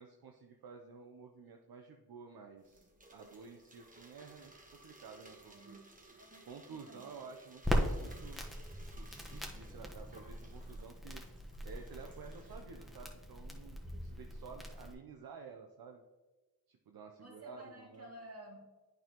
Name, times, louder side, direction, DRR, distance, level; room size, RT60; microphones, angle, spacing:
voice 1, 0.0-5.8 6.5-8.5 9.0-11.2 11.6-16.0 16.7-18.1, right 5 dB, 65° right, 3 dB, 0.6 m, -52 dB
sound 1, 2.6-12.6, right 1 dB, 20° right, 1.1 m, -60 dB
voice 2, 5.5-7.2 17.2-18.7, right 1 dB, 40° right, -2 dB, 2.1 m, -54 dB
Crackle, 7.6-14.9, equal, ahead, 1.0 m, -40 dB
8.6 x 5.5 x 2.9 m, 1.2 s
cardioid pair, 50°, 38 cm